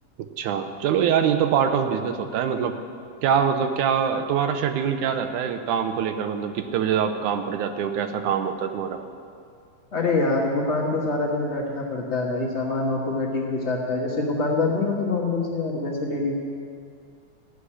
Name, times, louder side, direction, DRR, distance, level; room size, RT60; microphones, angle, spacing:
voice 1, 0.4-2.8 3.2-9.0, right 7 dB, 85° right, 8 dB, 2.3 m, -24 dB
voice 2, 9.9-16.4, left 3 dB, 85° left, -2 dB, 0.6 m, -25 dB
15.0 x 6.4 x 9.9 m, 2.3 s
omnidirectional pair, 3.5 m